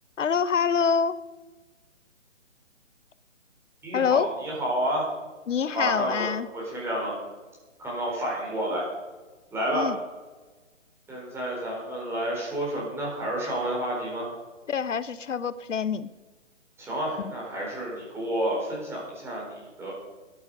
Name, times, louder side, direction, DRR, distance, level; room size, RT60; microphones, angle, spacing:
voice 1, 0.2-1.2 3.9-4.3 5.5-6.5 9.7-9.9 14.7-16.1, left 6 dB, 75° left, 16 dB, 0.8 m, -25 dB
voice 2, 3.8-5.1 5.7-7.1 7.8-8.8 9.5-9.9 11.1-14.3 16.8-19.9, right 1 dB, 5° right, -5 dB, 4.2 m, -30 dB
15.5 x 11.0 x 5.4 m, 1.2 s
hypercardioid pair, 155°, 38 cm